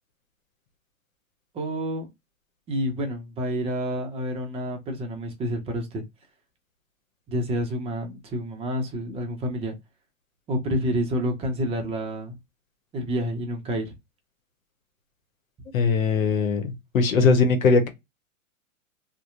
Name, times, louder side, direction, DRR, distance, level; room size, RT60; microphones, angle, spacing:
voice 1, 1.5-2.1 2.7-6.0 7.3-9.7 10.5-12.4 12.9-13.9, equal, 15° right, 0.6 m, -29 dB
voice 2, 15.7-17.9, left 4 dB, 80° left, 0.9 m, -20 dB
2.7 x 2.1 x 2.4 m
hypercardioid pair, 120°, 40 cm